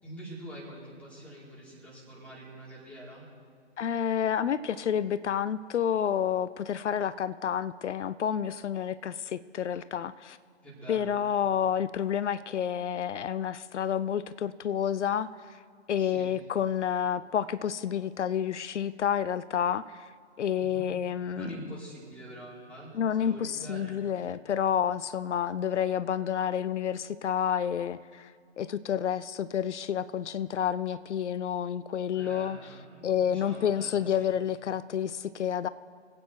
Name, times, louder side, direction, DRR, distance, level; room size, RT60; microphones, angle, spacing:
voice 1, 0.0-3.2 10.6-11.2 16.0-16.3 20.6-20.9 21.3-24.0 32.1-33.9 34.2-34.3, right 1 dB, 5° left, -8 dB, 4.8 m, -45 dB
voice 2, 3.8-10.4 10.9-15.6 15.9-20.1 20.4-21.5 22.9-28.3 28.6-32.6 33.0-35.7, left 9 dB, 80° left, 15 dB, 0.6 m, -29 dB
25.5 x 8.7 x 4.6 m, 2.2 s
figure-of-eight pair, 125°, 35 cm